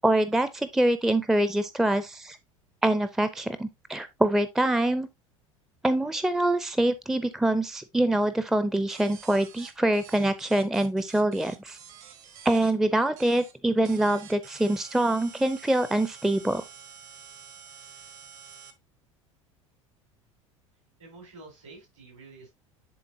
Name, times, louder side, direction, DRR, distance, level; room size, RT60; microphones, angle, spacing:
voice 1, 0.0-2.4 2.8-5.1 5.8-11.8 12.4-16.6, right 1 dB, ahead, 0.5 m, -25 dB
sound 1, 8.9-12.7 13.2-13.5 13.8-18.7, right 7 dB, 50° right, 1.2 m, -48 dB
voice 2, 21.0-22.5, right 3 dB, 65° right, 4.3 m, -48 dB
10.5 x 3.8 x 2.6 m
figure-of-eight pair, 75°, 17 cm